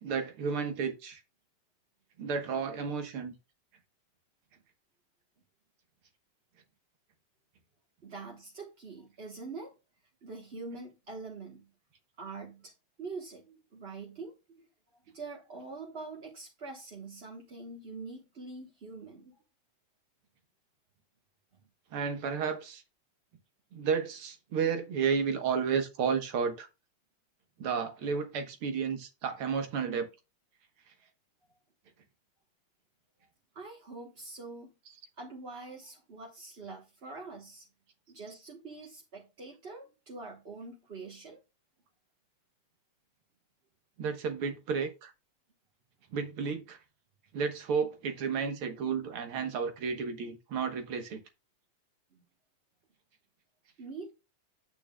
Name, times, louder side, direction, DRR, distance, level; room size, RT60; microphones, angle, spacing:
voice 1, 0.0-1.2 2.2-3.3 21.9-22.8 23.7-26.7 27.6-30.1 44.0-45.1 46.1-46.8 47.3-51.2, right 6 dB, 75° right, 2.2 m, -32 dB
voice 2, 8.0-9.7 10.2-11.7 12.2-12.7 13.0-14.7 15.1-19.4 33.5-34.7 35.2-37.7 38.1-41.4 52.1-52.2 53.8-54.1, right 3 dB, 35° right, 1.3 m, -44 dB
8.7 x 8.7 x 2.3 m
omnidirectional pair, 2.4 m